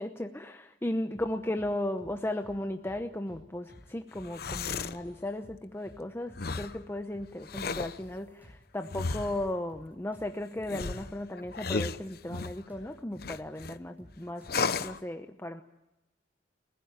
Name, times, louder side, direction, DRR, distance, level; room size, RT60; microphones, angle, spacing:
voice 1, 0.0-14.4 14.8-15.6, left 1 dB, 15° left, 6 dB, 0.9 m, -36 dB
sound 1, 1.1-1.7 2.0-2.1 2.4-3.4 3.7-3.9 4.1-5.1 5.4-5.6 5.8-6.9 7.1-7.3 7.6-9.0 9.3-12.0 12.3-12.4 12.7-14.7, equal, 10° right, 7.7 m, -55 dB
sound 2, 4.2-5.0 6.4-6.8 7.4-8.0 8.9-9.5 10.7-12.6 13.2-13.8 14.5-15.0, left 4 dB, 60° left, 0.9 m, -34 dB
30.0 x 16.0 x 9.1 m, 0.92 s
head